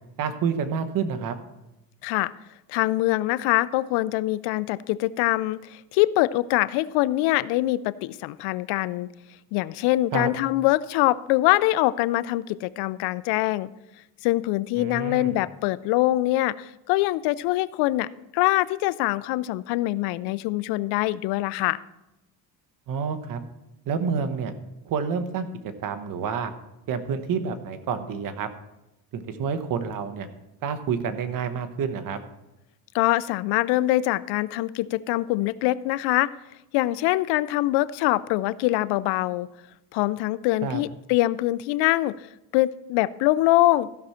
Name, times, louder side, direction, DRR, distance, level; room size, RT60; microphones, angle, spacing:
voice 1, 0.2-1.3 10.1-10.3 14.8-15.4 22.9-23.4 23.9-24.5 24.8-25.5 25.8-26.5 26.9-28.5 29.1-30.3 30.6-32.2 40.6-40.8, right 6 dB, 55° right, 10 dB, 1.1 m, -28 dB
voice 2, 2.0-2.3 2.7-9.1 9.5-13.7 14.2-21.8 32.9-36.3 36.7-39.5 39.9-42.3 42.5-43.9, left 17 dB, 85° left, 18 dB, 0.5 m, -24 dB
15.0 x 6.1 x 4.3 m, 0.94 s
cardioid pair, 125°, 40 cm